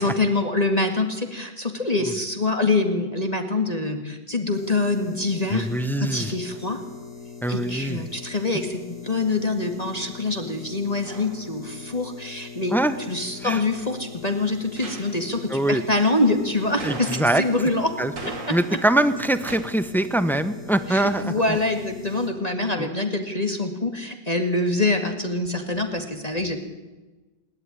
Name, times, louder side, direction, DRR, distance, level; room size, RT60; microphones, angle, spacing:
voice 1, 0.0-5.7 6.0-6.8 7.5-12.8 13.1-17.9 18.3-18.6 20.9-26.6, left 2 dB, 20° left, 4 dB, 1.9 m, -25 dB
sound 1, 4.5-22.3, left 5 dB, 65° left, 8.0 m, -41 dB
voice 2, 5.5-6.3 7.4-8.1 12.7-13.0 13.4-13.6 15.5-15.8 16.8-17.4 18.0-18.1 18.5-21.6 22.8-22.9, right 1 dB, ahead, 11 dB, 0.7 m, -23 dB
sound 2, 11.1-11.5 14.8-15.3 16.8-17.6 18.2-19.0 19.5-19.6, right 3 dB, 85° right, 3.2 m, -38 dB
27.0 x 11.5 x 9.9 m, 1.2 s
omnidirectional pair, 1.9 m